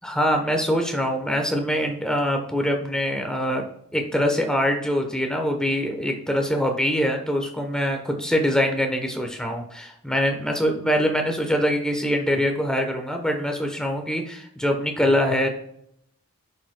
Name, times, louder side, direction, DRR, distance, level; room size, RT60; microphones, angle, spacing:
voice 1, 0.0-3.7 3.9-15.5, equal, 5° left, 3 dB, 1.0 m, -24 dB
11.0 x 7.6 x 2.3 m, 0.74 s
head